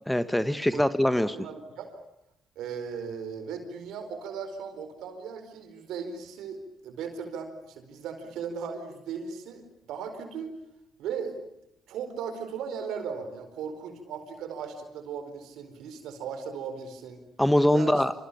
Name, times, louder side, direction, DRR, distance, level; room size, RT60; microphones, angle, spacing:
voice 1, 0.1-1.4 17.4-18.1, left 1 dB, 5° left, 12 dB, 1.6 m, -23 dB
voice 2, 1.2-2.0 2.6-10.5 11.0-11.4 11.9-17.2 17.7-18.0, right 6 dB, 75° right, 8 dB, 4.6 m, -37 dB
27.5 x 27.0 x 7.3 m, 0.81 s
hypercardioid pair, 50°, 0 cm